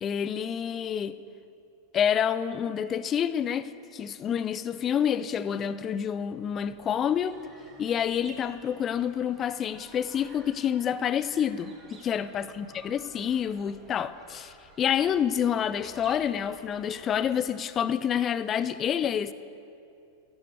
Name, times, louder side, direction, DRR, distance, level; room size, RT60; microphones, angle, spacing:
voice 1, 0.0-1.2 1.9-7.4 7.8-11.7 12.0-19.3, left 8 dB, 25° left, 0.4 m, -28 dB
sound 1, 6.3-17.9, right 2 dB, 25° right, 1.6 m, -53 dB
13.0 x 9.7 x 4.7 m
figure-of-eight pair, 90°, 0 cm